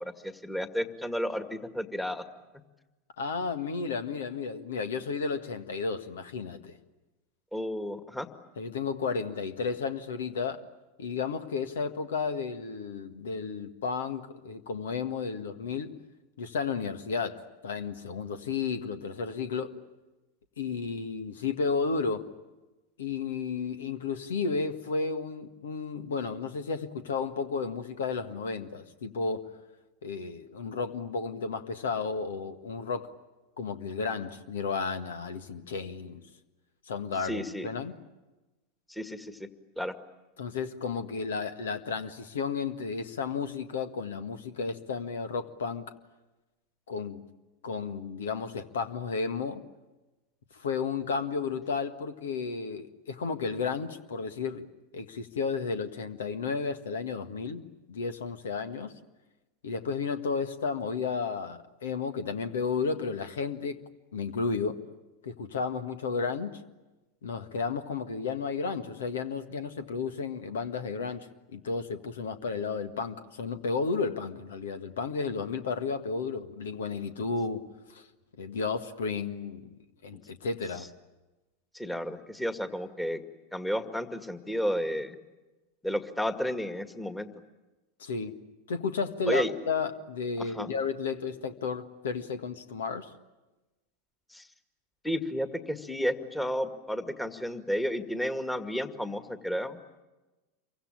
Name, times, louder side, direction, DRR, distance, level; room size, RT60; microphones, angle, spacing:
voice 1, 0.0-2.2 7.5-8.3 37.2-37.7 38.9-39.5 39.8-40.0 81.7-83.2 83.5-85.2 85.8-87.3 89.3-89.5 90.4-90.7 94.3-94.5 95.0-99.8, equal, 5° left, 8 dB, 2.1 m, -32 dB
voice 2, 3.2-6.8 8.6-10.6 11.0-16.0 16.4-19.8 20.6-22.3 23.0-29.6 30.0-33.1 33.6-36.2 36.9-38.0 40.4-45.9 46.9-47.2 47.6-49.6 50.5-54.7 54.9-58.9 59.6-63.8 64.1-64.8 65.2-66.6 67.2-77.6 77.9-78.0 78.4-79.8 80.0-80.9 88.0-88.4 88.7-93.1, left 5 dB, 70° left, 10 dB, 1.7 m, -33 dB
28.0 x 24.0 x 9.0 m, 1.1 s
figure-of-eight pair, 85°, 0 cm